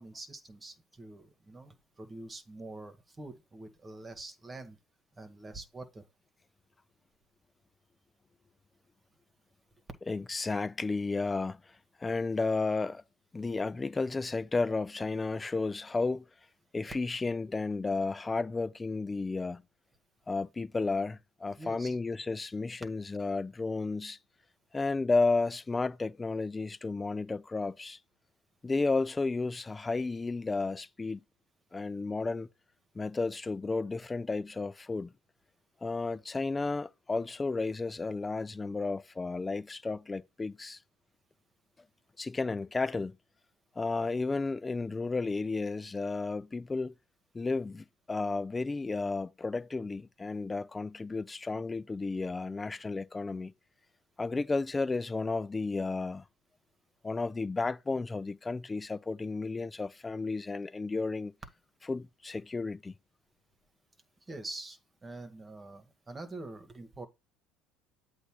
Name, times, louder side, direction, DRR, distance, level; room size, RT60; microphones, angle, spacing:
voice 1, 0.0-4.8 5.1-6.0 21.6-22.0 64.3-67.1, right 2 dB, 20° right, 1.6 m, -45 dB
voice 2, 10.1-13.0 13.3-16.2 16.7-19.6 20.3-24.2 24.7-28.0 28.6-31.2 31.7-32.5 32.9-35.1 35.8-40.8 42.2-43.1 43.8-46.9 47.3-53.5 54.2-56.2 57.0-61.3 61.9-63.0, left 3 dB, 20° left, 0.5 m, -32 dB
8.1 x 2.7 x 6.0 m
supercardioid pair, 90°, 0 cm